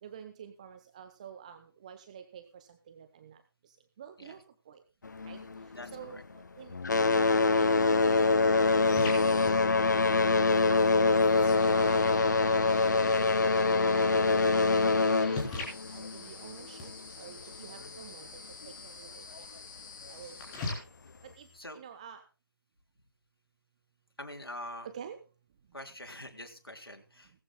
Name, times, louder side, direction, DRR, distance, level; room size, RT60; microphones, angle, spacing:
voice 1, 0.0-4.8 5.2-6.8 7.1-9.8 10.4-11.3 11.7-14.6 15.2-16.9 17.2-18.3 18.7-19.5 20.1-20.4 21.2-21.5 21.7-22.2 24.8-25.2, right 8 dB, 20° right, 9 dB, 0.7 m, -49 dB
sound 1, 5.0-6.4 6.7-17.0 17.9-18.0 18.6-18.7 19.4-19.5, left 3 dB, 50° left, 0.8 m, -25 dB
voice 2, 5.7-6.2 17.6-17.9 21.5-21.8 24.2-24.9 25.7-27.3, left 1 dB, 85° left, 4 dB, 3.5 m, -45 dB
sound 2, 7.6-21.6, left 3 dB, 15° left, 3.5 m, -44 dB
19.0 x 14.5 x 2.2 m, 0.33 s
figure-of-eight pair, 155°, 12 cm